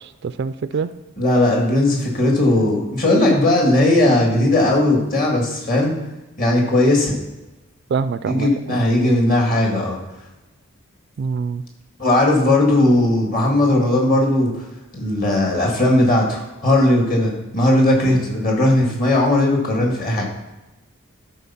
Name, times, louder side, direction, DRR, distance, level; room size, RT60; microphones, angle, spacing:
voice 1, 0.2-0.9 7.9-8.8 11.2-11.6, right 5 dB, 50° right, 13 dB, 0.3 m, -25 dB
voice 2, 1.2-5.9 6.4-7.1 8.3-10.0 12.0-14.6 14.9-20.2, left 1 dB, 40° left, 0 dB, 2.1 m, -17 dB
12.0 x 4.5 x 5.8 m, 1.0 s
head